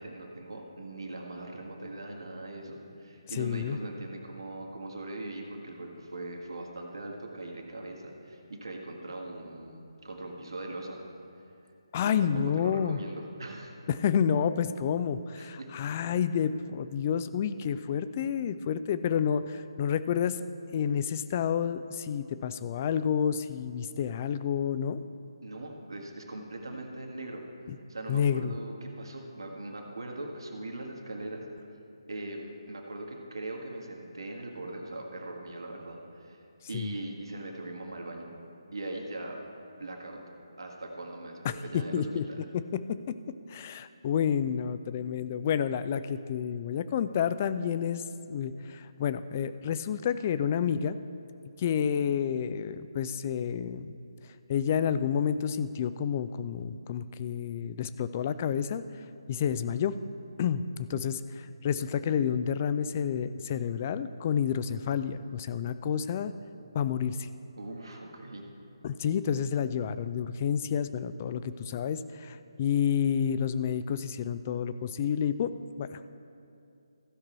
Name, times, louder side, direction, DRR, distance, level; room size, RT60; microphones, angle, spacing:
voice 1, 0.0-11.0 12.0-13.7 15.4-15.7 25.4-31.4 32.1-36.4 36.7-38.3 38.7-39.4 39.7-40.2 40.6-42.5 67.6-68.5, right 2 dB, 60° right, 1 dB, 1.7 m, -40 dB
voice 2, 3.3-3.8 11.9-13.0 13.9-20.4 20.7-25.0 28.1-28.5 36.7-36.9 41.4-42.2 42.5-43.2 43.5-48.0 48.3-51.0 51.6-53.9 54.5-58.8 59.3-59.9 60.4-60.6 60.9-66.3 66.7-67.3 68.8-75.5 75.8-76.0, left 8 dB, 25° left, 12 dB, 0.3 m, -29 dB
15.5 x 5.9 x 4.4 m, 2.6 s
figure-of-eight pair, 145°, 3 cm